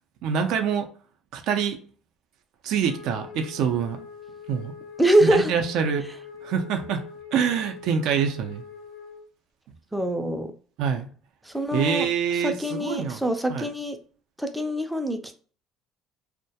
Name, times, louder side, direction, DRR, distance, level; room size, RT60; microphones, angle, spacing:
voice 1, 0.2-0.9 1.3-1.8 2.6-4.1 4.5-4.7 5.2-6.1 6.4-7.0 7.3-8.6 10.8-11.1 11.7-13.2 13.5-13.7, right 7 dB, 70° right, 5 dB, 0.4 m, -25 dB
Wind instrument woodwind instrument, 2.8-9.3, left 6 dB, 80° left, 0.6 m, -43 dB
voice 2, 5.0-5.5 9.9-10.5 11.5-12.1 12.4-14.0 14.4-15.3, right 1 dB, 5° right, 7 dB, 0.4 m, -24 dB
2.2 x 2.1 x 2.7 m, 0.43 s
cardioid pair, 125°, 0 cm